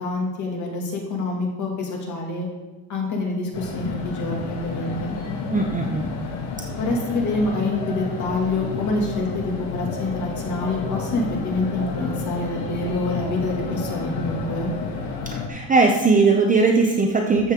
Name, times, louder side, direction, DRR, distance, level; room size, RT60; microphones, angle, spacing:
voice 1, 0.0-2.5 2.9-5.2 6.8-14.7, left 2 dB, 40° left, 0 dB, 2.1 m, -26 dB
sound 1, 3.5-15.5, left 4 dB, 75° left, 1.7 m, -30 dB
voice 2, 5.5-6.1 15.3-17.5, right 4 dB, 20° right, 2 dB, 0.5 m, -19 dB
12.0 x 7.4 x 3.6 m, 1.2 s
cardioid pair, 180°, 43 cm